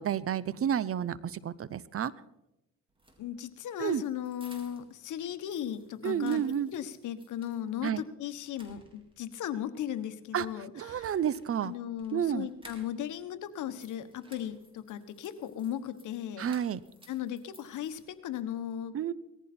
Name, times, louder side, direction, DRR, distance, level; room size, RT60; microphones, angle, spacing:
voice 1, 0.0-2.1 3.8-4.0 6.0-6.7 7.8-8.0 10.3-10.5 10.7-11.7 12.1-12.5 16.4-16.8 18.9-19.1, right 9 dB, 50° right, 19 dB, 0.7 m, -30 dB
sound 1, 2.9-5.0 5.3-7.6 8.0-8.1 8.5-9.3 10.9-13.2 13.5-18.4, right 1 dB, 15° right, 4.2 m, -58 dB
voice 2, 3.2-6.4 6.7-11.1 11.6-16.5 17.1-19.1, left 10 dB, 80° left, 11 dB, 1.3 m, -37 dB
18.5 x 14.5 x 4.3 m, 0.89 s
cardioid pair, 90°, 30 cm